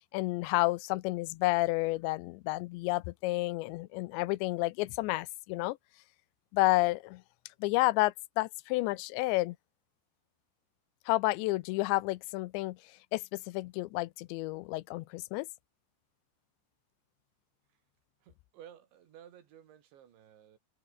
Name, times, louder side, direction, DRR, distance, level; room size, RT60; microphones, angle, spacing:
voice 1, 0.1-5.8 6.5-7.2 7.6-9.6 11.1-12.8 13.1-15.5, left 20 dB, 85° left, 3.0 m, -30 dB
voice 2, 18.2-20.6, right 10 dB, 85° right, 5.0 m, -55 dB
omnidirectional pair, 5.1 m